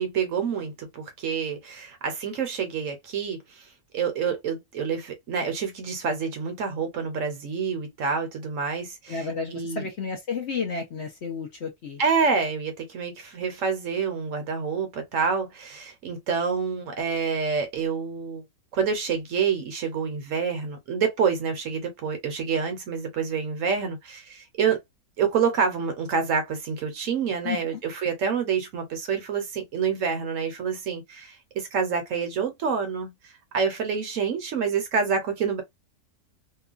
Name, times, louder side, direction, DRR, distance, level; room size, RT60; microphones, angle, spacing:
voice 1, 0.0-3.6 3.9-9.9 12.0-18.4 18.7-24.8 25.2-35.6, right 6 dB, 65° right, 1.0 m, -27 dB
voice 2, 9.1-12.0 27.4-27.8, left 5 dB, 55° left, 0.8 m, -32 dB
2.9 x 2.2 x 2.4 m
omnidirectional pair, 1.6 m